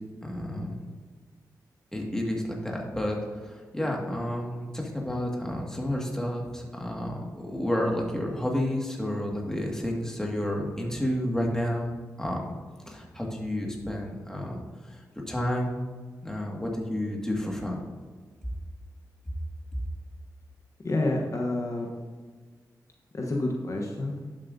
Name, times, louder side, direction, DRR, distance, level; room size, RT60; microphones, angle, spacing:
voice 1, 0.2-0.8 1.9-12.5 12.9-15.0 15.3-15.8 16.2-17.8, left 1 dB, 10° left, -1 dB, 1.9 m, -31 dB
voice 2, 20.8-21.9 23.1-24.2, left 2 dB, 45° left, 0 dB, 1.0 m, -28 dB
11.5 x 7.3 x 2.7 m, 1.5 s
cardioid pair, 75°, 7 cm